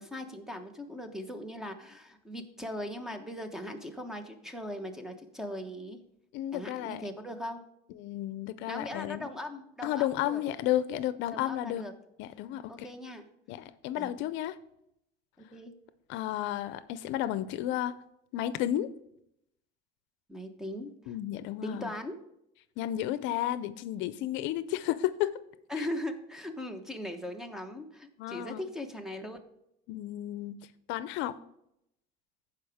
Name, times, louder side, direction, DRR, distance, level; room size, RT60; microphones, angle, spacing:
voice 1, 0.0-6.0 6.5-7.6 8.7-10.4 11.3-11.9 12.7-13.3 14.0-14.1 15.4-15.7 20.3-21.1 21.6-22.2 25.7-29.4, left 1 dB, ahead, 6 dB, 1.1 m, -39 dB
voice 2, 6.3-7.0 8.0-9.3 9.8-11.9 12.2-12.9 13.5-14.6 16.1-18.0 18.3-18.9 21.1-21.9 22.8-25.4 25.8-25.9 28.2-28.6 29.9-30.6 30.9-31.4, left 13 dB, 75° left, 14 dB, 0.5 m, -32 dB
14.5 x 5.0 x 3.5 m, 0.78 s
cardioid pair, 120°, 20 cm